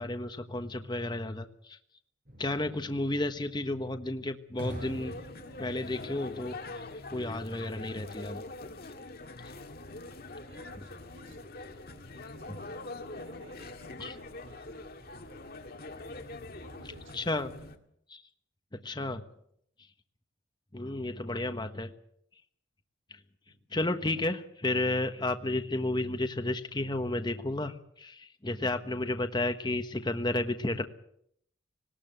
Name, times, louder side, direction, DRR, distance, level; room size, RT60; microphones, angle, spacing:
voice 1, 0.0-1.8 2.4-5.2 5.6-6.8 7.1-8.5 14.0-14.1 17.1-17.5 18.1-18.2 18.7-19.2 20.7-21.9 23.1-23.2 23.7-30.9, left 2 dB, 20° left, 7 dB, 1.2 m, -32 dB
sound 1, 2.3-7.3, equal, 45° right, 6.9 m, -45 dB
sound 2, 4.6-17.8, left 2 dB, 50° left, 1.9 m, -44 dB
voice 2, 10.2-15.5 16.5-17.5, right 2 dB, 85° right, 7 dB, 4.9 m, -57 dB
19.5 x 18.5 x 7.9 m, 0.70 s
head